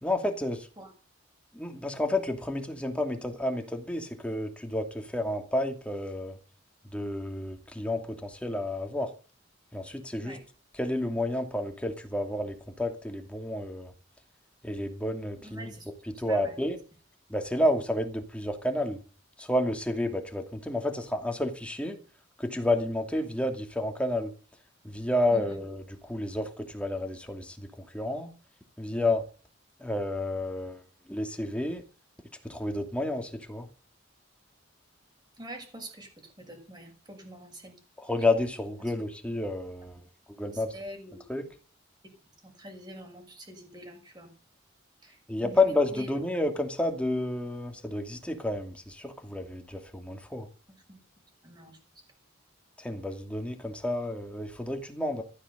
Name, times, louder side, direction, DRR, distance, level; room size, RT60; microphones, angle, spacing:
voice 1, 0.0-0.7 1.5-6.4 6.9-9.1 9.7-10.4 10.7-13.9 14.6-15.7 16.1-16.8 17.3-19.0 19.4-22.0 22.4-24.3 24.8-28.3 28.8-29.3 29.8-31.8 32.4-33.7 38.0-40.7 41.3-41.5 45.3-50.5 52.8-55.2, left 1 dB, 5° left, 2.6 m, -30 dB
voice 2, 15.4-15.9 16.3-16.5 25.3-25.6 35.4-37.8 40.7-41.2 42.4-44.3 45.0-46.1 50.9-51.0 51.4-51.8, right 1 dB, 20° right, 6.2 m, -45 dB
15.0 x 13.0 x 6.7 m
head